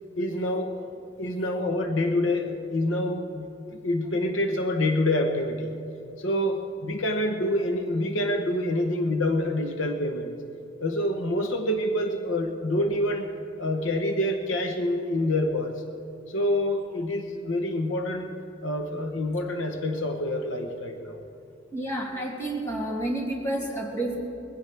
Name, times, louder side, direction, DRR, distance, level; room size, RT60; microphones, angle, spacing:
voice 1, 0.2-0.9 1.2-5.7 6.2-10.4 10.8-13.3 13.6-15.7 16.3-18.3 18.6-21.2, left 1 dB, 85° left, 5 dB, 1.0 m, -27 dB
voice 2, 21.7-24.2, right 1 dB, 15° left, -3 dB, 2.6 m, -30 dB
21.0 x 16.0 x 3.4 m, 2.6 s
head